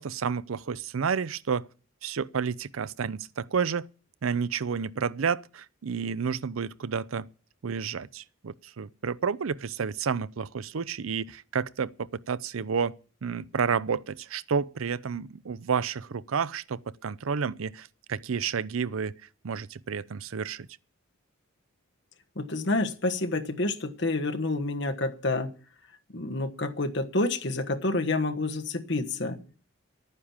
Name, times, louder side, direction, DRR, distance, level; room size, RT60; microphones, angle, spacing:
voice 1, 0.0-1.7 2.0-3.9 4.2-7.3 7.6-12.9 13.2-19.1 19.4-20.7, right 6 dB, 85° right, 0.5 m, -30 dB
voice 2, 22.4-25.5 26.1-29.4, left 2 dB, 55° left, 1.3 m, -28 dB
11.5 x 9.7 x 7.2 m
head